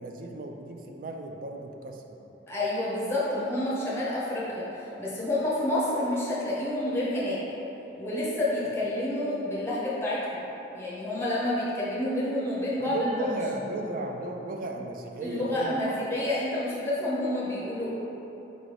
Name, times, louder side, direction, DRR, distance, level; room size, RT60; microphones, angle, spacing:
voice 1, 0.0-2.2 12.8-16.0, right 2 dB, 45° right, 3 dB, 0.3 m, -35 dB
voice 2, 2.5-7.4 8.0-10.4 10.7-13.0 15.2-17.9, left 1 dB, 15° left, -8 dB, 0.6 m, -29 dB
5.0 x 2.7 x 3.1 m, 3.0 s
head